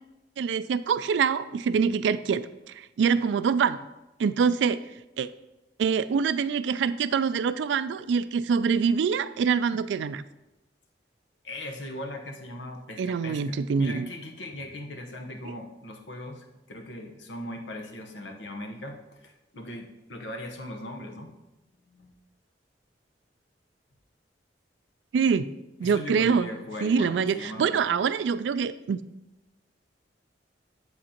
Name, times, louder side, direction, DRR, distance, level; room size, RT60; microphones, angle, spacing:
voice 1, 0.4-3.8 4.2-4.8 5.2-5.3 5.8-10.2 13.0-14.1 25.1-25.5 25.8-26.5 26.8-29.0, right 6 dB, 75° right, 14 dB, 0.3 m, -25 dB
voice 2, 11.4-21.3 21.9-22.1 25.8-27.8, left 1 dB, 90° left, 3 dB, 1.0 m, -39 dB
7.9 x 7.7 x 2.9 m, 0.96 s
head